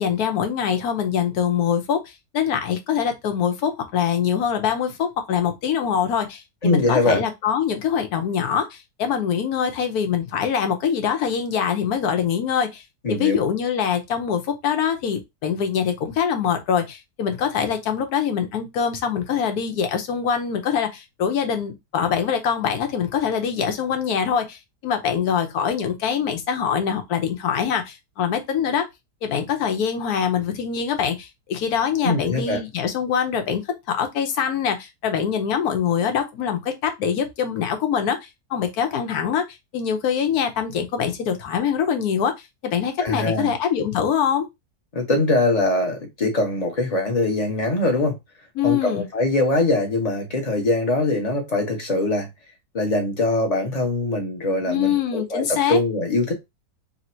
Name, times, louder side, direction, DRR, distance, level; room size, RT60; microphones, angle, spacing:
voice 1, 0.0-2.0 2.3-12.8 13.1-28.9 29.2-39.4 39.7-42.3 42.6-44.5 48.6-49.0 54.7-55.8, left 7 dB, 70° left, 1.3 m, -24 dB
voice 2, 6.6-7.2 13.0-13.4 32.0-32.6 43.0-43.5 44.9-48.2 48.6-52.3 52.7-56.3, left 2 dB, 30° left, 1.0 m, -22 dB
3.4 x 2.8 x 4.2 m
omnidirectional pair, 1.8 m